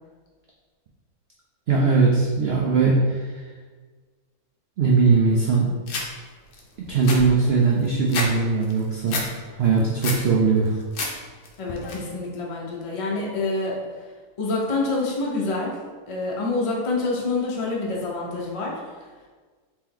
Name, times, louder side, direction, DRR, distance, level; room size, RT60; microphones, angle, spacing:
voice 1, 1.7-3.4 4.8-5.7 6.8-9.2 9.5-10.8, right 4 dB, 80° right, -2 dB, 0.5 m, -20 dB
sound 1, 5.9-6.1 6.5-6.6 6.9-8.3 8.6-9.3 9.7-10.2 10.7-11.1 11.4-11.9, left 3 dB, 75° left, 1.2 m, -29 dB
voice 2, 11.6-13.8 14.4-15.8 16.1-18.8, left 3 dB, 35° left, -3 dB, 0.5 m, -27 dB
4.1 x 3.0 x 3.8 m, 1.4 s
omnidirectional pair, 1.6 m